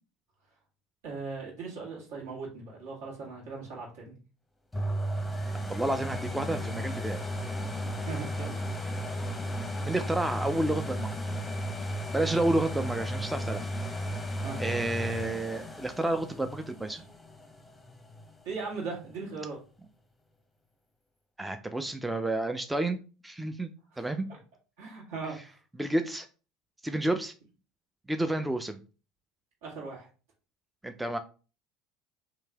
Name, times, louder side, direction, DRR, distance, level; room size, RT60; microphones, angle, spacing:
voice 1, 1.0-4.1 8.0-8.6 14.4-14.6 18.4-19.6 23.9-24.4 24.8-25.5 29.6-30.1, right 4 dB, 70° right, -3 dB, 1.8 m, -39 dB
sound 1, 4.7-18.4 18.9-19.0, equal, 10° left, 0.7 m, -34 dB
voice 2, 5.7-7.2 9.8-11.1 12.1-13.7 14.6-17.0 21.4-23.0 23.2-23.7 24.0-24.3 25.8-26.3 26.8-27.3 28.1-28.8 30.8-31.2, right 1 dB, 10° right, 8 dB, 0.4 m, -30 dB
3.1 x 2.7 x 3.4 m, 0.35 s
hypercardioid pair, 70°, 0 cm